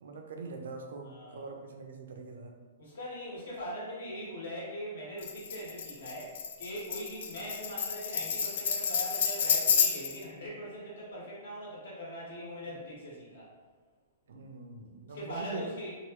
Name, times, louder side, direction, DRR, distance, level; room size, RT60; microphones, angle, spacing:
voice 1, 0.0-2.5 10.1-10.2 12.6-12.7 14.3-15.6, right 3 dB, 80° right, 4 dB, 0.4 m, -43 dB
voice 2, 1.0-1.5 2.8-13.5 15.1-15.9, equal, 70° left, -6 dB, 1.3 m, -41 dB
Tambourine, 5.2-10.2, left 7 dB, 55° left, 0.3 m, -30 dB
3.0 x 2.3 x 3.0 m, 1.4 s
hypercardioid pair, 175°, 0 cm